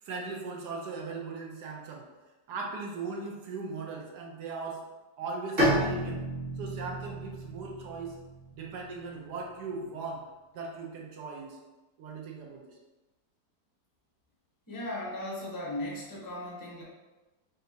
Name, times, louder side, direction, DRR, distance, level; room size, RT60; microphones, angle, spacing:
voice 1, 0.0-2.1 2.5-4.8 5.2-6.2 6.6-8.2 8.5-10.2 10.5-11.6 12.0-12.8, right 4 dB, 75° right, 0 dB, 1.3 m, -38 dB
Bowed string instrument, 5.6-9.2, equal, 30° right, 1.6 m, -31 dB
voice 2, 14.7-16.8, left 1 dB, 30° left, -3 dB, 0.4 m, -37 dB
5.2 x 2.8 x 2.8 m, 1.1 s
omnidirectional pair, 1.9 m